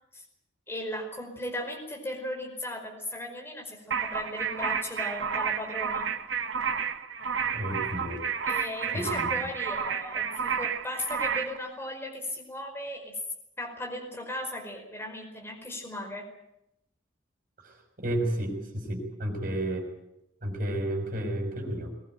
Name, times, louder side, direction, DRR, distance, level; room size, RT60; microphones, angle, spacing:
voice 1, 0.7-6.1 8.5-13.1 13.6-16.3, left 1 dB, 10° left, 2 dB, 5.0 m, -37 dB
sound 1, 3.9-11.6, right 6 dB, 70° right, 1.8 m, -31 dB
voice 2, 7.5-8.4 8.9-9.4 17.6-19.9 20.4-21.9, right 1 dB, 45° right, 3 dB, 5.8 m, -32 dB
21.5 x 20.0 x 9.1 m, 0.83 s
head